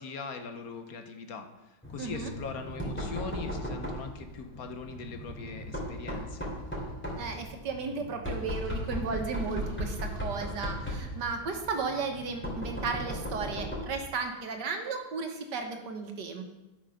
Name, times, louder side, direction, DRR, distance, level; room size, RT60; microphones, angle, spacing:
voice 1, 0.0-6.5, left 5 dB, 60° left, 7 dB, 1.3 m, -41 dB
Knock, 1.8-14.0, equal, 5° left, 2.8 m, -37 dB
voice 2, 2.0-2.3 7.2-16.5, right 4 dB, 90° right, 4 dB, 1.9 m, -34 dB
12.0 x 6.4 x 5.7 m, 1.0 s
omnidirectional pair, 1.8 m